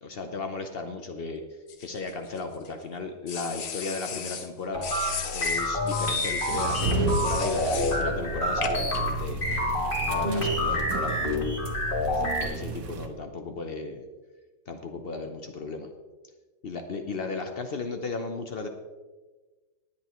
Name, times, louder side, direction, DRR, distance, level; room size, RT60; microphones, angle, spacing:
voice 1, 0.0-1.4 1.8-4.9 5.3-9.4 10.0-11.2 12.0-14.1 14.7-15.9 16.6-18.7, left 3 dB, 85° left, 5 dB, 0.5 m, -35 dB
sound 1, 1.7-2.7 3.3-4.5 4.8-8.0 8.6-9.0, left 7 dB, 55° left, 1.0 m, -36 dB
sound 2, 4.7-12.4, left 1 dB, 25° left, 2.4 m, -28 dB
sound 3, 6.5-13.1, right 2 dB, 60° right, 1.7 m, -33 dB
19.5 x 8.8 x 3.1 m, 1.3 s
omnidirectional pair, 2.2 m